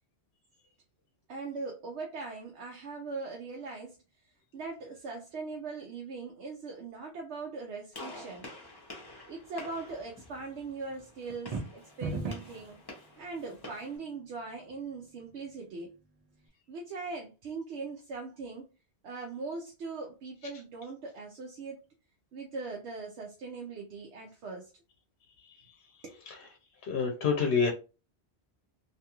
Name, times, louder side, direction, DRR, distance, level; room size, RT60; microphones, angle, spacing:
voice 1, 1.3-4.0 4.2-8.5 9.3-12.8 13.2-15.9 16.7-18.7 19.0-21.8 22.3-24.7 26.0-26.2, right 4 dB, 85° right, 0.9 m, -40 dB
Gunshot gunfire, 7.9-14.0, left 1 dB, 25° left, 0.7 m, -48 dB
sound 1, 11.3-12.6, right 3 dB, 50° right, 0.5 m, -35 dB
voice 2, 26.8-27.7, left 5 dB, 75° left, 0.8 m, -27 dB
2.6 x 2.3 x 2.8 m
omnidirectional pair, 1.1 m